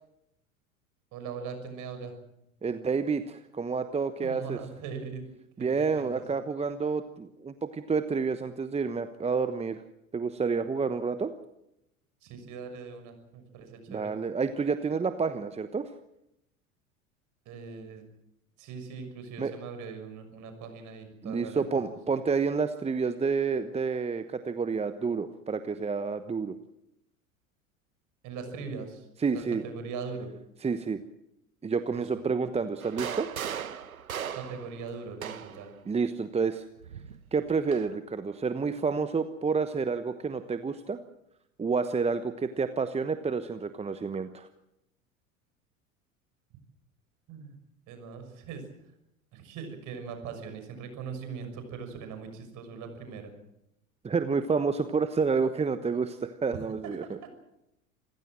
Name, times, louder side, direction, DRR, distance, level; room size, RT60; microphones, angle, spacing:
voice 1, 1.1-2.1 4.2-5.2 5.6-6.2 12.2-14.1 17.4-18.1 18.6-22.0 28.2-30.3 31.9-32.2 34.3-35.7 47.3-47.6 47.9-48.7 49.3-53.3 56.5-57.2, right 5 dB, 45° right, 7 dB, 6.3 m, -41 dB
voice 2, 2.6-4.6 5.6-9.8 10.1-11.3 13.9-15.9 19.4-19.5 21.2-26.6 29.2-29.6 30.6-31.0 31.6-33.3 35.9-36.6 37.3-41.0 41.6-44.5 54.0-57.0, right 5 dB, 15° right, 10 dB, 1.1 m, -29 dB
sound 1, 32.8-35.7 36.8-37.9, right 8 dB, 80° right, 1.2 m, -38 dB
27.5 x 16.0 x 7.6 m, 0.86 s
figure-of-eight pair, 75°, 41 cm